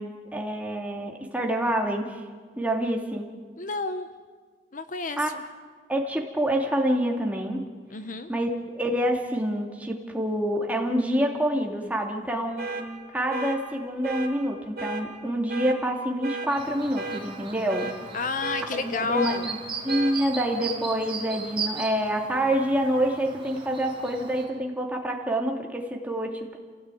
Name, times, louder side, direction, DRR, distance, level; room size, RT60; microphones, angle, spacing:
voice 1, 0.0-2.2 2.6-3.3 5.2-5.3 5.9-7.6 8.3-12.8 13.1-17.9 18.7-19.6 19.8-26.6, right 1 dB, 10° right, 1 dB, 2.8 m, -27 dB
voice 2, 3.6-4.1 4.7-5.4 7.9-8.3 18.1-19.5, left 3 dB, 45° left, 9 dB, 1.0 m, -30 dB
sound 1, 12.6-12.8 13.3-13.6 14.0-14.3 14.8-15.0 15.5-15.8 16.2-16.5 17.0-17.2 17.7-18.0 18.4-18.7 19.1-19.4 19.9-20.1, right 3 dB, 55° right, 3.2 m, -33 dB
Chirp tweet, 16.5-24.5, right 5 dB, 30° right, 4.4 m, -38 dB
28.0 x 17.0 x 9.3 m, 1.6 s
head